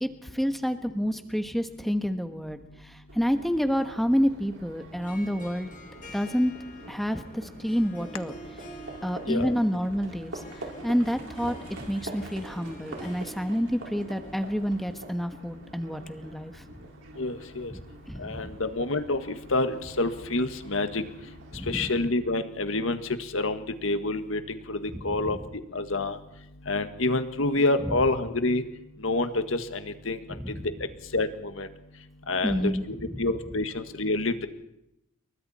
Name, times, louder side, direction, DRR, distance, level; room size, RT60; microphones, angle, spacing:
voice 1, 0.0-5.7 6.1-6.5 6.9-8.3 9.0-11.5 11.9-16.6 17.7-18.4 21.5-21.9 24.9-25.4 27.8-27.9 30.3-30.7 32.4-33.2, equal, ahead, 7 dB, 1.2 m, -29 dB
Livestock farm animals working animals, 3.1-22.1, right 1 dB, 70° right, 4.8 m, -45 dB
Harp, 4.9-15.2, right 1 dB, 40° left, 2.8 m, -48 dB
voice 2, 17.2-17.7 18.2-21.0 21.7-23.0 23.3-25.4 25.7-26.2 26.7-28.6 29.0-30.2 31.1-31.7 32.3-34.3, left 2 dB, 80° left, 9 dB, 1.6 m, -27 dB
29.0 x 23.0 x 4.3 m, 0.86 s
head